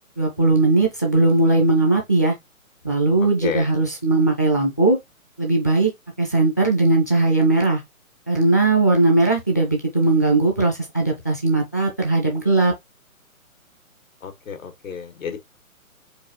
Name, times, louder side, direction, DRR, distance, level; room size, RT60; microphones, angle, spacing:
voice 1, 0.2-2.3 2.8-5.0 5.4-5.9 6.2-7.8 8.3-12.7, right 2 dB, 15° left, 0.4 m, -19 dB
voice 2, 14.2-15.4, left 7 dB, 70° left, 1.9 m, -30 dB
4.7 x 2.7 x 4.0 m
hypercardioid pair, 150°, 42 cm